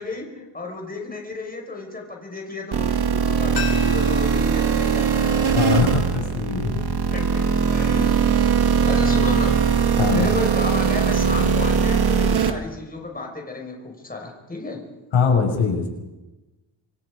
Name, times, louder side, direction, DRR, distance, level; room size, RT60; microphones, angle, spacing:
voice 1, 0.0-5.5 7.1-8.4 8.9-9.6 10.1-14.8, left 3 dB, 20° left, 1 dB, 5.7 m, -33 dB
sound 1, 2.7-12.5, right 6 dB, 55° right, 2.2 m, -20 dB
sound 2, 3.5-6.3 6.6-6.7, left 7 dB, 55° left, 5.8 m, -37 dB
voice 2, 5.5-6.8 10.0-10.3 15.1-15.9, left 6 dB, 90° left, 2 dB, 6.2 m, -21 dB
29.0 x 26.5 x 5.1 m, 1.1 s
wide cardioid pair, 145°, 46 cm